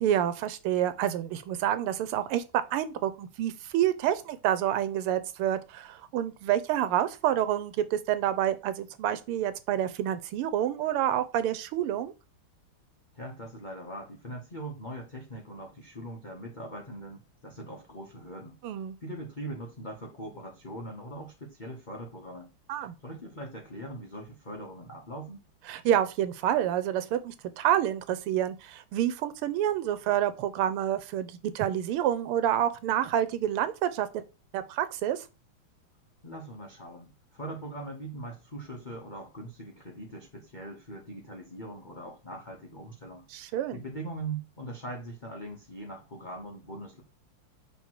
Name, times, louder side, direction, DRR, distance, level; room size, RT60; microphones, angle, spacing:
voice 1, 0.0-2.4 2.7-12.1 18.6-19.0 22.7-22.9 25.7-34.2 34.5-35.2 43.3-43.8, right 11 dB, 85° right, 1.6 m, -28 dB
voice 2, 13.1-18.6 19.0-22.5 22.8-25.4 36.2-47.0, right 1 dB, 35° left, 0.8 m, -41 dB
5.8 x 3.5 x 4.7 m
omnidirectional pair, 2.4 m